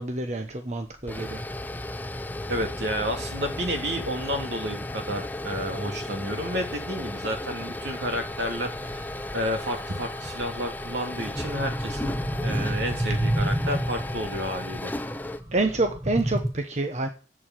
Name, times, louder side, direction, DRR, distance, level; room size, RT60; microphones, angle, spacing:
voice 1, 0.0-1.4 15.5-17.1, right 2 dB, 40° right, 6 dB, 1.0 m, -27 dB
sound 1, 0.9-15.4, left 1 dB, 10° left, 0.6 m, -35 dB
voice 2, 2.5-9.0 9.3-14.9, equal, 75° right, 4 dB, 2.4 m, -31 dB
sound 2, 7.8-16.5, right 1 dB, 20° right, 1.4 m, -31 dB
8.5 x 7.1 x 7.6 m, 0.36 s
head